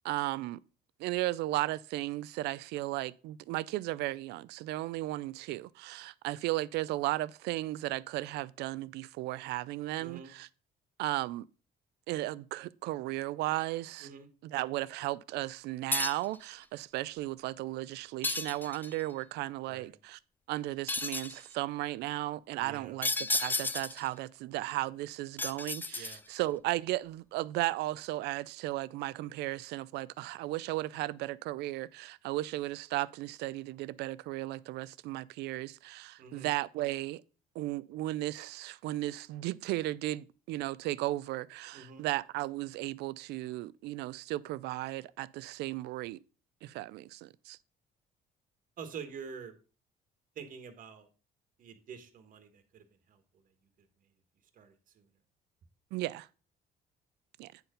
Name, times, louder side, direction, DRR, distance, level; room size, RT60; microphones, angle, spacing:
voice 1, 0.0-0.6 1.0-10.5 11.0-11.5 12.1-14.1 14.4-20.2 20.5-37.2 37.6-46.2 46.6-47.6 55.9-56.3 57.4-57.5, right 17 dB, 85° right, 0.4 m, -35 dB
voice 2, 10.0-10.3 14.0-14.3 19.7-20.0 22.6-23.0 25.9-26.2 36.2-36.5 41.7-42.0 48.8-49.5 50.3-51.1 51.6-53.2 54.5-55.1, right 6 dB, 50° right, 1.5 m, -47 dB
sound 1, 15.9-16.4 18.2-19.0 20.9-21.4 23.0-24.1 25.4-26.4, left 3 dB, 10° left, 0.4 m, -33 dB
9.4 x 4.4 x 5.1 m
cardioid pair, 110°, 17 cm